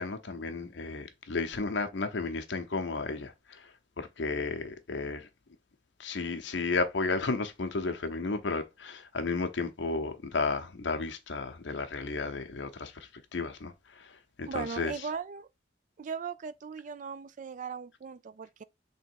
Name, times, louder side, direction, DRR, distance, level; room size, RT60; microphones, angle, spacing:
voice 1, 0.0-3.6 4.0-5.3 6.0-12.9 13.3-13.7 14.4-14.9, left 3 dB, 75° left, 0.7 m, -33 dB
voice 2, 14.5-15.5 16.0-18.6, right 6 dB, 45° right, 0.3 m, -38 dB
3.5 x 3.0 x 4.5 m
head